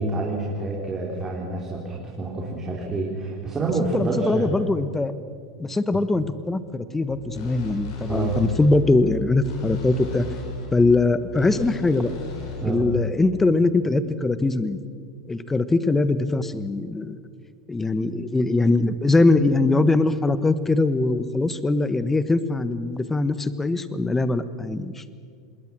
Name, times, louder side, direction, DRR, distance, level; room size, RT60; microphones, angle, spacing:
voice 1, 0.0-4.5 5.9-6.0 8.1-8.4 12.6-12.9, right 3 dB, 25° right, -2 dB, 4.2 m, -28 dB
voice 2, 3.9-5.1 5.6-10.3 10.7-12.1 12.6-14.8 15.3-17.2 17.7-25.0, left 2 dB, 15° left, 13 dB, 1.4 m, -22 dB
sound 1, 7.1-12.7, left 2 dB, 70° left, 6.7 m, -35 dB
26.5 x 21.0 x 6.4 m, 2.1 s
hypercardioid pair, 95°, 2 cm